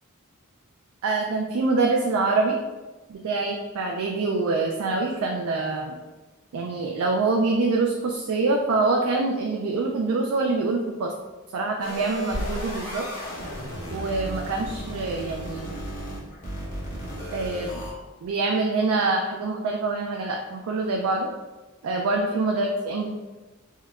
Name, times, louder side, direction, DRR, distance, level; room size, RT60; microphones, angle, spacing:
voice 1, 1.0-2.6 3.1-6.0 6.5-11.1 11.5-13.0 13.9-15.8 17.3-17.8 18.2-21.3 21.8-23.1, right 3 dB, 75° right, 1 dB, 0.3 m, -25 dB
sound 1, 11.8-17.9, equal, 40° left, 0.9 m, -34 dB
4.5 x 2.2 x 2.3 m, 1.2 s
head